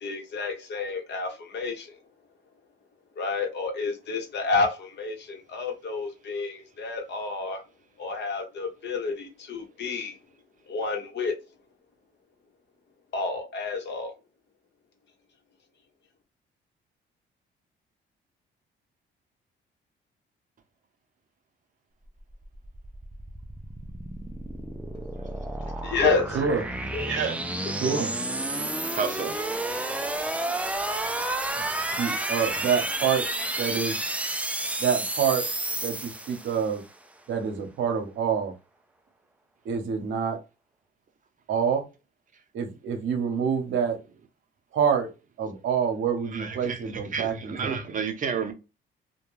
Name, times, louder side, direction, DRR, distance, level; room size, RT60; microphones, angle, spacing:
voice 1, 0.0-2.0 3.2-7.6 8.0-10.2 10.7-11.3 13.1-14.1 25.8-26.4 26.9-27.0 27.8-27.9, left 4 dB, 60° left, 0.9 m, -29 dB
sound 1, 22.2-36.8, right 1 dB, 5° right, 0.4 m, -31 dB
voice 2, 27.0-27.4 27.8-28.1 31.6-31.7 32.0-33.2 33.6-34.0 34.8-35.5 35.8-36.8 37.3-38.5 39.6-40.4 41.5-41.9 42.5-44.0 44.7-45.1 45.4-47.7, right 7 dB, 70° right, 0.8 m, -27 dB
voice 3, 28.9-29.4 46.3-48.5, right 6 dB, 40° right, 0.6 m, -31 dB
2.2 x 2.2 x 3.1 m
cardioid pair, 90°, 20 cm